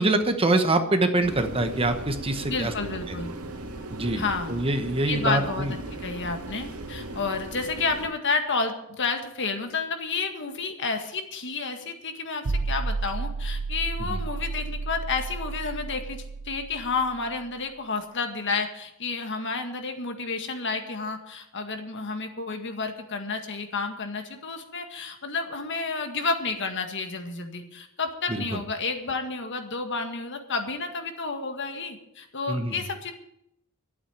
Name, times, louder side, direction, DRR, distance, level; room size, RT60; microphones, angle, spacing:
voice 1, 0.0-2.7 3.1-3.2 3.9-4.2 4.5-5.7 14.1-14.2 28.3-28.4 32.5-32.7, right 2 dB, 25° right, 7 dB, 1.2 m, -24 dB
sound 1, 1.2-8.1, right 1 dB, 90° right, 2.1 m, -37 dB
voice 2, 2.5-3.3 4.2-4.6 5.1-33.1, left 4 dB, 60° left, 5 dB, 1.9 m, -30 dB
sound 2, 12.4-17.5, right 3 dB, 70° right, 0.8 m, -32 dB
12.0 x 8.7 x 9.0 m, 0.78 s
head